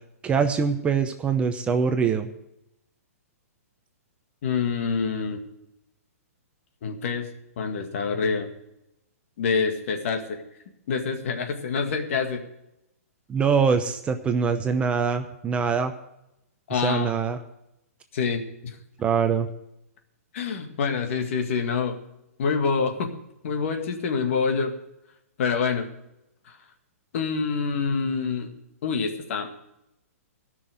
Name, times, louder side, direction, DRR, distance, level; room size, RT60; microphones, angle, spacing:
voice 1, 0.2-2.3 13.3-15.9 16.7-17.4 19.0-19.5, right 6 dB, 15° right, 7 dB, 0.7 m, -23 dB
voice 2, 4.4-5.4 6.8-7.3 7.6-8.5 9.4-10.4 10.9-12.4 16.7-17.1 18.1-18.8 20.3-22.0 22.4-23.1 23.4-24.7 25.4-25.9 26.5-26.6 27.1-28.5 28.8-29.5, left 5 dB, 55° left, 5 dB, 2.1 m, -26 dB
13.5 x 6.2 x 9.0 m, 0.86 s
hypercardioid pair, 140°, 8 cm